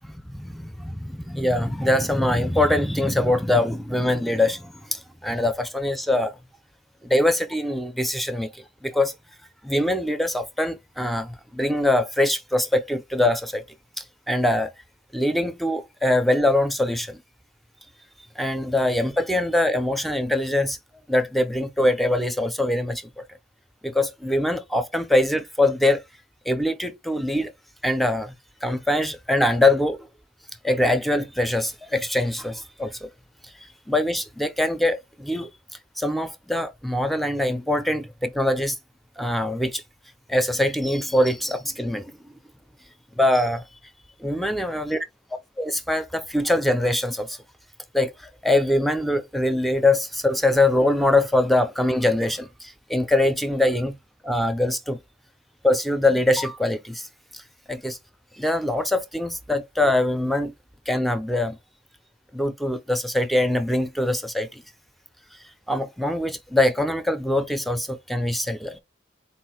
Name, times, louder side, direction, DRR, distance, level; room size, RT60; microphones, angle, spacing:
voice 1, 0.0-6.3 7.0-9.1 9.6-13.6 14.3-14.7 15.1-17.2 18.4-20.8 21.1-23.2 23.8-26.0 26.5-27.5 27.8-28.4 28.6-30.1 30.6-33.1 33.9-35.5 36.0-38.8 39.2-39.8 40.3-42.3 43.2-43.6 44.2-45.0 45.6-47.4 47.9-54.0 54.2-55.0 55.6-57.1 57.3-57.4 57.7-58.0 58.4-60.5 60.9-61.6 62.3-64.6 65.7-68.8, left 1 dB, ahead, 0.5 m, -23 dB
4.2 x 2.5 x 4.2 m
head